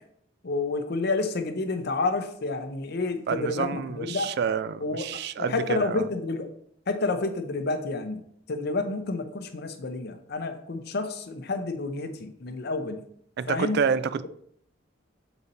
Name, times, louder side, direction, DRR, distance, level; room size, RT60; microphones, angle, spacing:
voice 1, 0.4-4.3 4.8-6.5 6.9-8.2 8.5-13.0 13.5-13.8, left 3 dB, 55° left, 0.7 m, -29 dB
voice 2, 3.3-6.0 13.4-14.3, right 6 dB, 55° right, 0.3 m, -28 dB
6.8 x 4.0 x 4.1 m
head